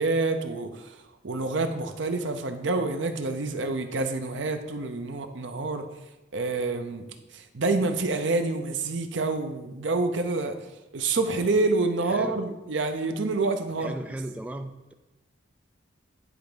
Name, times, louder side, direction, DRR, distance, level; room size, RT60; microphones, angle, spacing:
voice 1, 0.0-5.9 6.3-7.1 7.3-10.6 10.9-13.9, right 3 dB, 70° right, 7 dB, 0.7 m, -27 dB
voice 2, 12.1-12.4 13.8-14.9, right 1 dB, 5° right, 7 dB, 0.3 m, -36 dB
10.0 x 3.5 x 5.1 m, 1.0 s
head